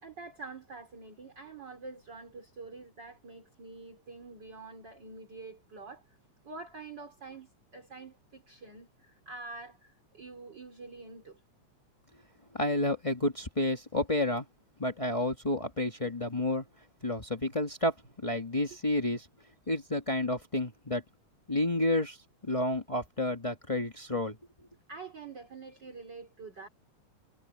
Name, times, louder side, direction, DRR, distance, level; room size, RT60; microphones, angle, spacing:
voice 1, 0.0-6.0 6.4-11.4 24.9-26.7, right 3 dB, 35° right, 4.4 m, -46 dB
voice 2, 12.5-14.5 14.8-16.6 17.0-17.9 18.2-19.3 19.7-21.0 21.5-22.2 22.4-24.3, left 1 dB, 40° left, 0.4 m, -30 dB
omnidirectional pair, 3.4 m